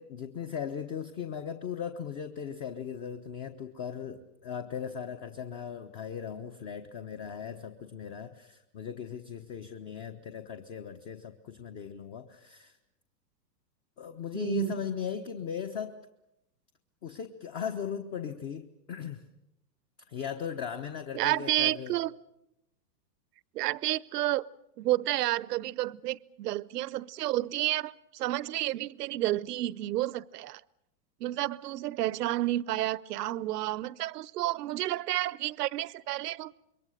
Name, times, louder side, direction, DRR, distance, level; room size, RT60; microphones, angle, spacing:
voice 1, 0.0-12.8 14.0-16.0 17.0-19.2 20.1-22.0, left 7 dB, 30° left, 1.2 m, -38 dB
voice 2, 14.3-14.8 21.1-22.1 23.5-24.5 24.8-30.6 31.2-36.5, right 15 dB, 70° right, 0.8 m, -30 dB
27.0 x 22.5 x 6.6 m
hypercardioid pair, 145°, 49 cm